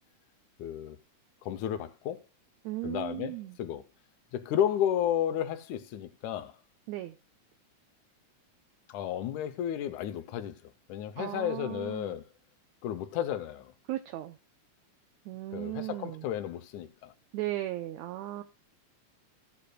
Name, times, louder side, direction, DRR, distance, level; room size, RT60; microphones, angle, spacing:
voice 1, 0.6-1.0 1.4-2.2 2.8-3.8 4.3-6.6 8.9-12.2 12.8-13.7 15.5-17.1, left 10 dB, 80° left, 2.2 m, -32 dB
voice 2, 2.6-3.6 6.9-7.2 11.2-12.2 13.9-14.4 15.3-16.2 17.3-18.4, right 16 dB, 75° right, 1.9 m, -36 dB
15.5 x 8.5 x 2.2 m
omnidirectional pair, 3.4 m